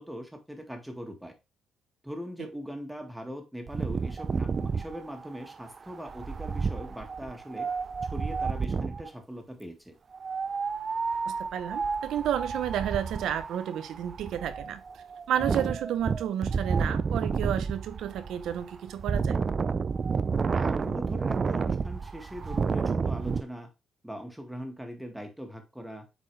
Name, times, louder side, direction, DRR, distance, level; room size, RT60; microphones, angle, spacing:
voice 1, 0.0-1.3 2.0-7.7 8.0-9.9 15.4-15.6 20.5-23.7 24.0-26.1, equal, 5° right, 2.0 m, -40 dB
Wind, 3.7-9.1 10.1-23.4, right 5 dB, 40° right, 0.5 m, -31 dB
voice 2, 11.3-19.4, right 10 dB, 80° right, 0.8 m, -31 dB
8.1 x 4.5 x 3.2 m
cardioid pair, 90°, 0 cm